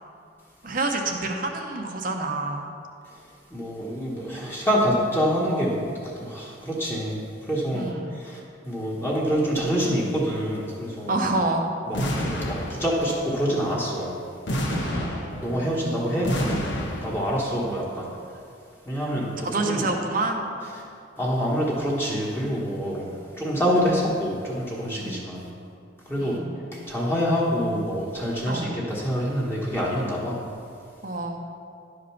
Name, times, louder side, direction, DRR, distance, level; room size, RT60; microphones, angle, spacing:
voice 1, 0.6-2.7 7.7-8.1 11.1-11.7 14.7-15.7 19.4-20.5 25.0-25.5 26.2-26.7 28.5-28.7 31.0-31.4, right 2 dB, 45° right, 2 dB, 0.7 m, -28 dB
voice 2, 3.5-11.1 11.9-14.2 14.8-18.4 18.8-19.8 21.2-25.5 26.0-26.4 26.7-30.4, equal, 10° left, -5 dB, 1.2 m, -26 dB
sound 1, 11.9-13.2 14.5-15.7 16.2-17.4, equal, 70° left, 1.2 m, -29 dB
11.0 x 5.2 x 5.8 m, 2.4 s
head